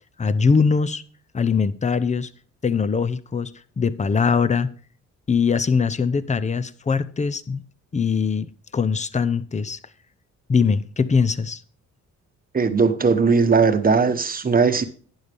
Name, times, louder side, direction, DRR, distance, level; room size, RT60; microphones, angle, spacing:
voice 1, 0.2-1.0 1.3-2.3 2.6-3.5 3.8-4.7 5.3-7.6 7.9-9.8 10.5-11.6, left 5 dB, 25° left, 14 dB, 0.8 m, -21 dB
voice 2, 12.5-14.8, right 5 dB, 30° right, 9 dB, 1.2 m, -18 dB
12.0 x 9.7 x 3.5 m, 0.43 s
cardioid pair, 90°, 30 cm